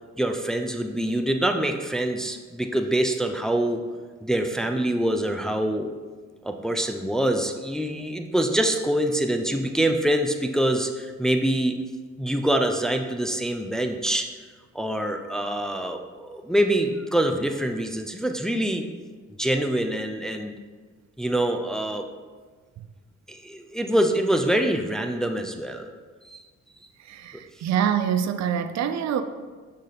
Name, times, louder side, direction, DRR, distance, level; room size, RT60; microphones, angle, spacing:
voice 1, 0.2-3.8 4.2-5.9 6.4-11.8 12.2-14.3 14.7-18.9 19.4-20.5 21.2-22.1 23.3-25.9 26.2-26.4, right 1 dB, ahead, 5 dB, 0.5 m, -25 dB
voice 2, 27.0-29.2, right 8 dB, 65° right, 10 dB, 0.5 m, -25 dB
6.3 x 5.1 x 4.1 m, 1.4 s
cardioid pair, 90°, 30 cm